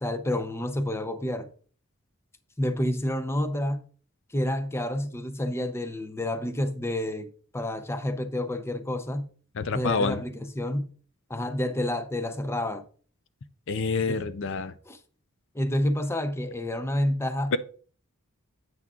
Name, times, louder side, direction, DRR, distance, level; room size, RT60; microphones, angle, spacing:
voice 1, 0.0-1.5 2.6-3.8 4.3-9.3 9.7-10.9 11.3-12.8 14.1-14.2 14.9-15.0 15.5-17.6, left 1 dB, 10° left, 0.6 m, -29 dB
voice 2, 9.6-10.2 13.7-14.7 17.5-17.6, left 4 dB, 65° left, 0.5 m, -27 dB
9.7 x 8.7 x 2.4 m
head